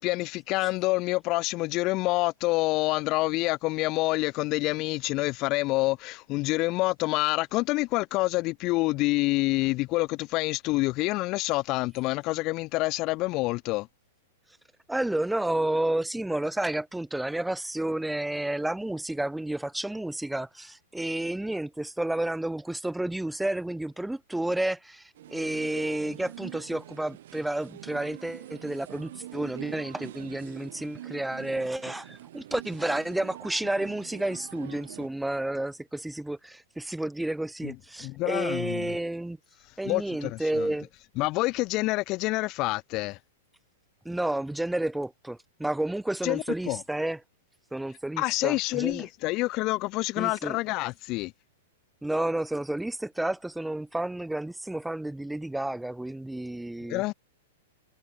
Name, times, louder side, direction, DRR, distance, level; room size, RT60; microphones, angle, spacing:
voice 1, 0.0-13.9 37.6-37.8 38.0-38.9 39.8-40.7 41.2-43.2 46.2-46.8 48.2-51.3 56.9-57.1, left 21 dB, 30° left, 0.7 m, -27 dB
voice 2, 14.9-39.4 39.8-40.9 44.0-47.2 47.7-49.1 50.2-50.6 52.0-57.1, right 1 dB, ahead, 0.9 m, -31 dB
sound 1, 25.2-35.1, right 13 dB, 60° right, 7.2 m, -44 dB
supercardioid pair, 170°, 0 cm